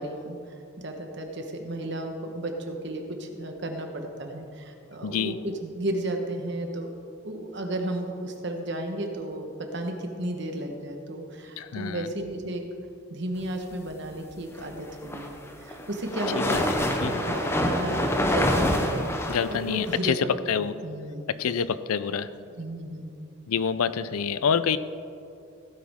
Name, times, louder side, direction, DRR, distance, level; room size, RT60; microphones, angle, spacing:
voice 1, 0.0-6.9 7.2-12.6 13.1-16.7 17.2-19.1 19.5-20.2 20.5-21.3 22.6-23.1, right 1 dB, 55° right, 3 dB, 1.3 m, -33 dB
voice 2, 5.0-5.4 11.6-12.1 16.5-16.6 17.0-17.3 19.3-20.2 20.5-20.7 21.4-22.3 23.5-24.8, left 7 dB, 90° left, 15 dB, 0.5 m, -27 dB
sound 1, 14.9-20.0, left 1 dB, 10° left, 0.7 m, -26 dB
16.0 x 9.5 x 3.6 m, 2.5 s
head